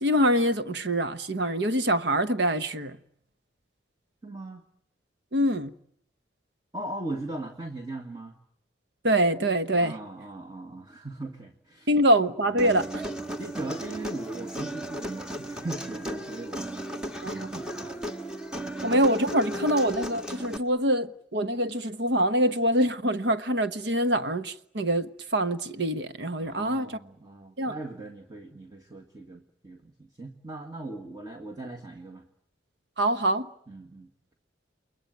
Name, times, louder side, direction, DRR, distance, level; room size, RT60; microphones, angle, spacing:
voice 1, 0.0-3.0 5.3-5.7 9.0-9.9 11.9-13.0 17.2-17.5 18.8-26.9 27.6-27.7 33.0-33.5, right 1 dB, 65° right, 1.2 m, -25 dB
voice 2, 4.2-4.6 6.7-8.4 9.8-12.0 12.4-13.1 13.4-16.7 17.2-18.0 18.5-18.9 19.6-19.7 26.4-32.3 33.7-34.1, right 2 dB, 20° right, 1.9 m, -39 dB
Human voice, 12.6-20.6, right 1 dB, 5° right, 1.5 m, -35 dB
29.5 x 21.5 x 9.3 m
head